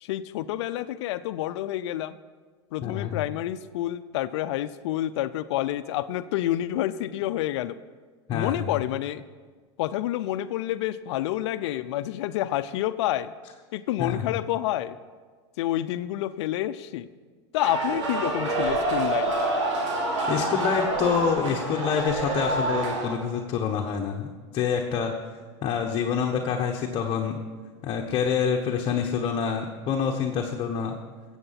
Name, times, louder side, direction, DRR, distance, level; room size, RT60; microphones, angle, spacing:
voice 1, 0.0-2.2 2.7-7.8 8.3-9.2 9.8-13.3 13.7-15.0 15.6-17.1 17.5-19.3, left 13 dB, 70° left, 13 dB, 0.5 m, -28 dB
voice 2, 2.8-3.2 8.3-8.7 14.0-14.3 20.3-24.3 24.5-25.1 25.6-27.3 27.8-31.0, left 7 dB, 35° left, 1 dB, 1.1 m, -27 dB
sound 1, 17.6-23.1, right 2 dB, 90° right, 2.8 m, -27 dB
15.0 x 8.0 x 5.8 m, 1.5 s
supercardioid pair, 130°, 15 cm